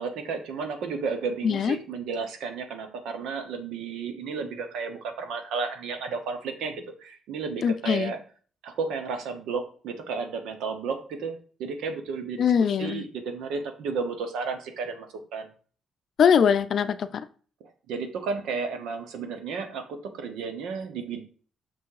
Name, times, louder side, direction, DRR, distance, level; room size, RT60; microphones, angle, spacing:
voice 1, 0.0-8.2 8.6-12.4 12.8-15.5 17.6-21.2, right 5 dB, 85° right, 7 dB, 1.0 m, -33 dB
voice 2, 1.4-1.8 7.6-8.1 12.4-13.0 16.2-17.2, left 7 dB, 60° left, 12 dB, 0.5 m, -22 dB
6.2 x 3.5 x 4.8 m, 0.41 s
cardioid pair, 90°, 0 cm